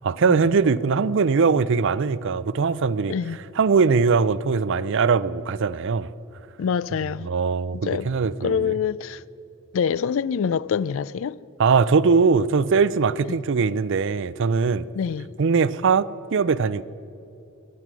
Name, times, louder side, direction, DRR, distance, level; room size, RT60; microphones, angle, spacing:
voice 1, 0.0-3.2 3.6-6.1 7.2-8.7 11.6-14.9 15.4-16.8, right 5 dB, 60° right, 0.5 m, -21 dB
voice 2, 3.1-3.4 6.6-7.3 7.7-8.1 8.4-9.2 9.7-11.4 15.0-15.3, left 7 dB, 65° left, 0.4 m, -25 dB
23.0 x 9.9 x 6.2 m
head